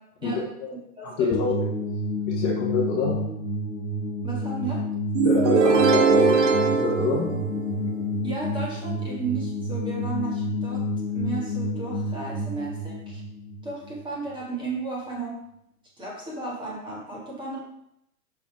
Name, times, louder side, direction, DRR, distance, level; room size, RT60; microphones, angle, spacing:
voice 1, 0.2-0.7 1.0-1.6 2.4-3.2 5.2-7.3, left 4 dB, 30° left, -3 dB, 1.2 m, -27 dB
voice 2, 1.0-1.5 4.2-4.9 8.2-13.2 13.6-15.4 16.0-17.6, right 3 dB, 10° right, -5 dB, 1.9 m, -34 dB
sound 1, 1.3-14.4, left 1 dB, 60° left, 1.1 m, -29 dB
sound 2, 5.1-8.0, right 5 dB, 50° right, 0.9 m, -21 dB
5.9 x 4.0 x 4.6 m, 0.77 s
hypercardioid pair, 125°, 46 cm